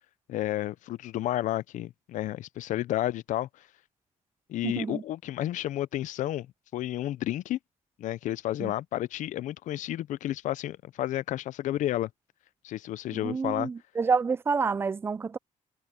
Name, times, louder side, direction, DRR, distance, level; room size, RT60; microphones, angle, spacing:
voice 1, 0.3-3.5 4.5-6.5 6.7-7.6 8.0-12.1 12.6-13.7, left 14 dB, 80° left, 0.5 m, -31 dB
voice 2, 4.6-5.0 8.6-8.7 13.1-15.4, right 5 dB, 20° right, 0.3 m, -28 dB
cardioid pair, 155°, 13 cm